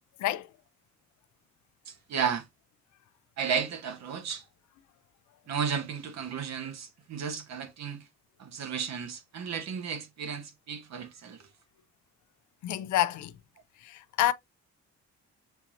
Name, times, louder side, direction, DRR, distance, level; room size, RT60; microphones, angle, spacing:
voice 1, 0.2-0.5 12.6-13.4 13.8-14.3, left 14 dB, 75° left, 0.6 m, -28 dB
voice 2, 1.9-2.4 3.4-4.4 5.5-8.0 8.4-11.4, right 7 dB, 60° right, 1.1 m, -33 dB
6.8 x 2.8 x 2.5 m
cardioid pair, 90°, 30 cm